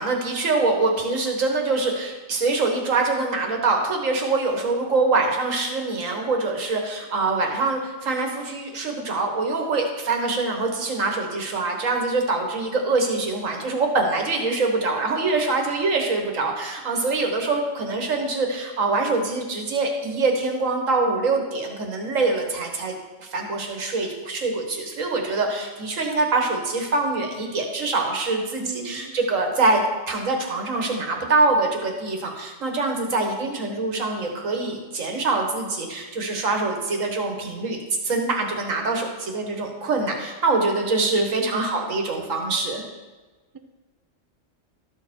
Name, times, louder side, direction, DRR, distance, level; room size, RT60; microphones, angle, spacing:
voice 1, 0.0-22.9 23.2-37.8 38.0-42.8, right 3 dB, 80° right, 2 dB, 1.8 m, -24 dB
voice 2, 28.6-29.1 41.4-41.8, right 5 dB, 25° right, 6 dB, 0.4 m, -37 dB
12.5 x 6.5 x 4.5 m, 1.2 s
omnidirectional pair, 1.3 m